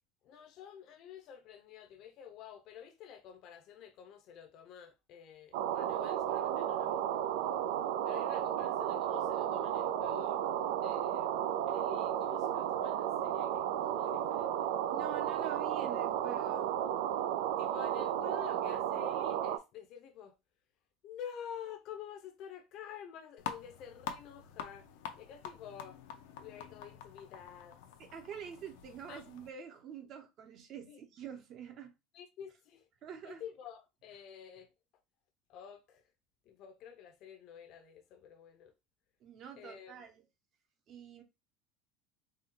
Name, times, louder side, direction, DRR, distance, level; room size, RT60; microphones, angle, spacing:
voice 1, 0.2-7.2 8.0-10.4 10.8-11.4 11.7-13.7 14.0-14.7 17.6-20.4 21.0-24.9 25.2-26.0 26.4-27.8 29.1-29.3 30.9-31.0 32.1-32.9 33.2-34.7 35.5-36.0 36.4-38.7 39.6-40.0, left 8 dB, 40° left, 0.6 m, -49 dB
sound 1, 5.5-19.6, right 10 dB, 90° right, 0.5 m, -33 dB
voice 2, 14.9-16.7 28.0-31.9 33.0-33.4 39.2-40.2 40.9-41.2, right 8 dB, 35° right, 0.7 m, -47 dB
sound 2, 23.4-29.5, left 8 dB, 90° left, 0.7 m, -46 dB
4.3 x 2.3 x 3.8 m
cardioid pair, 180°, 0 cm